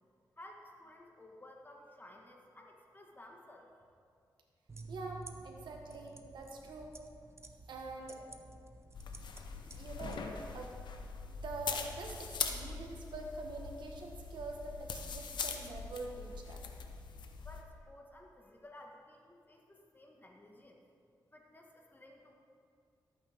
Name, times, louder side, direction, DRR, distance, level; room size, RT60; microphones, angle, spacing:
voice 1, 0.4-3.7 17.4-20.8 21.3-22.3, left 1 dB, 25° left, 1 dB, 1.6 m, -55 dB
sound 1, 4.7-10.2, right 3 dB, 35° right, 0.8 m, -52 dB
voice 2, 4.9-7.0 7.7-8.2 9.7-10.7 11.2-16.6, right 2 dB, 80° right, 1 dB, 1.4 m, -45 dB
sound 2, 8.9-17.6, left 5 dB, 80° left, 0.8 m, -42 dB
13.0 x 8.9 x 3.6 m, 2.3 s
cardioid pair, 75°, 8 cm